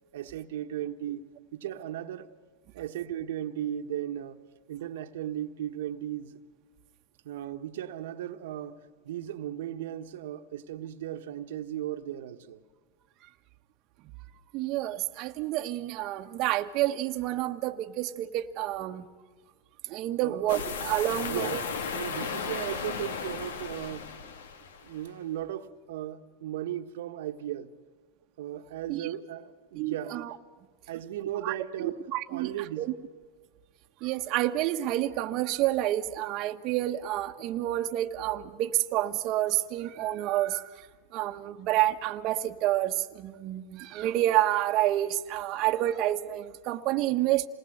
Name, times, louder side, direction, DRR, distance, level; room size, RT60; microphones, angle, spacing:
voice 1, 0.1-1.2 1.5-2.3 2.7-4.4 4.7-6.4 7.2-12.6 20.2-20.4 21.1-21.7 21.9-24.1 24.8-27.7 28.4-30.2 30.9-32.0 32.3-32.9, right 11 dB, 80° right, 1.3 m, -36 dB
voice 2, 14.5-19.1 19.9-21.6 28.9-29.1 29.7-30.3 31.4-32.9 34.0-40.9 41.1-47.5, right 14 dB, 45° right, 1.2 m, -29 dB
sound 1, 20.5-25.0, left 6 dB, 85° left, 2.0 m, -35 dB
27.5 x 20.0 x 7.9 m
supercardioid pair, 130°, 0 cm